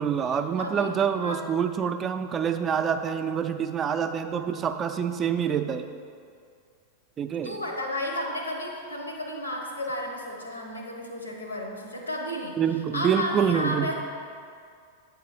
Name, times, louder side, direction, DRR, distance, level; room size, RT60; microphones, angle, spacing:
voice 1, 0.0-5.9 7.2-7.6 12.6-13.9, right 7 dB, 25° right, 8 dB, 0.4 m, -26 dB
voice 2, 0.6-0.9 1.2-1.4 7.4-12.6 12.9-13.9, left 1 dB, 80° left, 1 dB, 0.9 m, -32 dB
8.8 x 3.8 x 4.3 m, 2.2 s
figure-of-eight pair, 90°, 0 cm